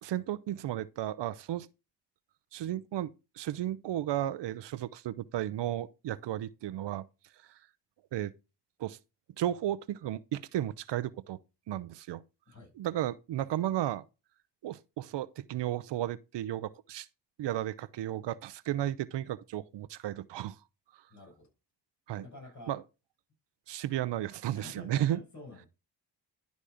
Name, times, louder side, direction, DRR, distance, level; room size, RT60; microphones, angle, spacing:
voice 1, 0.0-1.7 2.5-7.0 8.1-8.3 8.8-9.0 9.4-11.4 11.7-12.2 12.8-14.0 14.6-17.1 17.4-20.6 22.1-22.3 22.7-22.8 23.7-25.2, right 12 dB, 80° right, 0.7 m, -34 dB
voice 2, 21.1-21.5 22.2-22.8 24.5-25.7, left 2 dB, 40° left, 6.5 m, -49 dB
11.5 x 4.1 x 4.9 m
cardioid pair, 95°, 42 cm